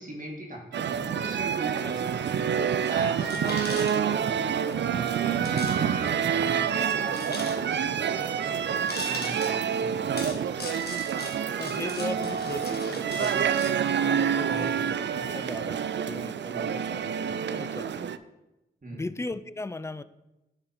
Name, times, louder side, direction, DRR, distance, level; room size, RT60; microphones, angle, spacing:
voice 1, 0.0-2.3 2.9-4.6 4.9-10.6 14.5-14.8 18.8-19.1, right 1 dB, 45° right, -2 dB, 2.1 m, -40 dB
sound 1, 0.7-18.2, right 8 dB, 65° right, 0.4 m, -27 dB
voice 2, 1.8-2.2 2.6-2.7 3.0-3.3 5.4-5.6 10.6-10.7 11.6-13.7 14.0-15.8 16.1-18.1 18.9-20.0, left 2 dB, 15° left, 13 dB, 0.4 m, -38 dB
sound 2, 3.2-4.4 4.6-4.7 5.4-5.8 6.1-6.2 7.1-7.9 8.9-9.6 10.2-13.7, left 3 dB, 55° left, 1.5 m, -39 dB
10.0 x 3.9 x 4.3 m, 0.98 s
cardioid pair, 40°, 20 cm